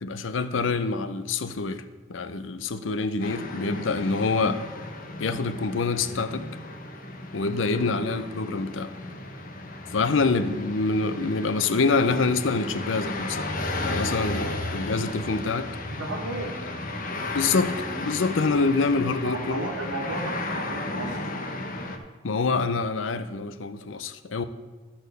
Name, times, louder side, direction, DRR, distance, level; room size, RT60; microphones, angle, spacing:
voice 1, 0.0-1.8 2.1-4.6 5.2-6.4 7.3-8.9 9.9-13.5 13.8-15.7 17.3-17.8 18.0-19.7 22.2-24.4, left 4 dB, 70° left, 12 dB, 0.6 m, -26 dB
sound 1, 3.2-22.0, left 2 dB, 45° left, 0.9 m, -34 dB
voice 2, 16.0-16.6 19.2-21.2, right 2 dB, 75° right, 0 dB, 1.5 m, -33 dB
13.0 x 4.3 x 6.6 m, 1.3 s
head